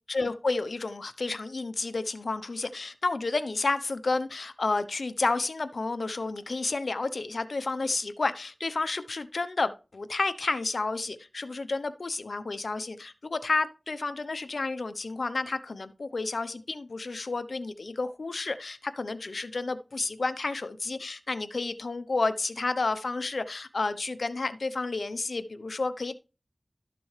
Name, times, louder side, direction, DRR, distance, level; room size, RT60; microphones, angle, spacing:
voice 1, 0.1-26.1, left 3 dB, 85° left, 0.8 m, -31 dB
12.5 x 6.8 x 3.2 m
wide cardioid pair, 55°, 0 cm